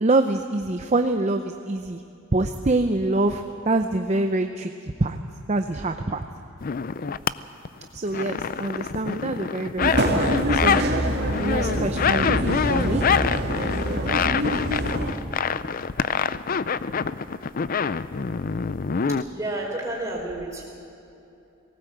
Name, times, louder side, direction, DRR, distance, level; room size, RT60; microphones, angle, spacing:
voice 1, 0.0-2.0 2.3-4.7 5.0-5.2 5.5-6.2 7.9-10.8 11.4-13.0, right 2 dB, 35° right, 6 dB, 0.6 m, -25 dB
sound 1, 6.6-7.3 7.7-10.9 11.2-19.2, left 6 dB, 45° left, 0.4 m, -26 dB
sound 2, 9.8-15.1, right 1 dB, 55° right, 2.4 m, -25 dB
voice 2, 19.3-20.6, right 1 dB, 15° right, -3 dB, 4.9 m, -30 dB
19.5 x 18.0 x 7.9 m, 2.7 s
head